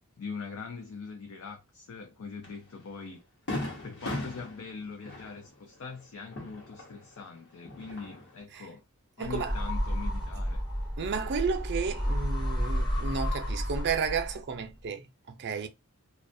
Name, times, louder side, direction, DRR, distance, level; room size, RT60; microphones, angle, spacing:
voice 1, 0.2-3.2 3.8-8.8 9.2-10.6, left 5 dB, 65° left, 0.5 m, -42 dB
Fireworks, 2.4-2.6 3.0-3.1 3.5-7.2 7.6-8.4, left 1 dB, 50° left, 1.0 m, -38 dB
sound 1, 9.2-14.5, equal, 20° left, 0.8 m, -31 dB
voice 2, 9.2-9.5 11.0-15.7, right 5 dB, 50° right, 0.5 m, -32 dB
2.3 x 2.1 x 2.6 m
head